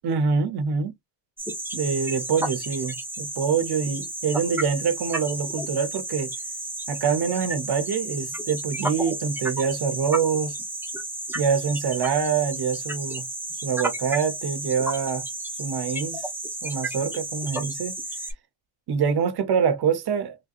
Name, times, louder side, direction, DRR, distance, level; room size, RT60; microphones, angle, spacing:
voice 1, 0.0-0.9 1.7-6.3 6.9-10.5 11.3-13.2 13.6-15.2 15.6-16.2 16.6-18.0 18.9-20.4, right 6 dB, 55° right, 0.8 m, -25 dB
sound 1, 1.4-18.3, right 1 dB, 5° right, 0.6 m, -32 dB
3.3 x 2.7 x 2.4 m
wide cardioid pair, 180°, 46 cm